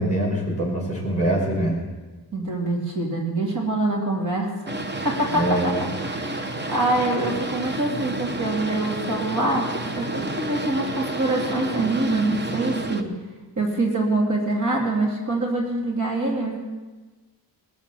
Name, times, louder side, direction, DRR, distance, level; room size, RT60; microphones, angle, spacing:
voice 1, 0.0-1.8 5.3-5.8, right 1 dB, 15° left, -2 dB, 5.3 m, -23 dB
voice 2, 2.3-4.8 5.0-5.5 6.0-13.1 13.6-16.6, right 2 dB, 45° right, -2 dB, 2.6 m, -25 dB
Boat Water vehicle, 4.7-13.0, right 2 dB, 25° right, 0.9 m, -30 dB
20.5 x 7.2 x 7.4 m, 1.2 s
wide cardioid pair, 180°, 43 cm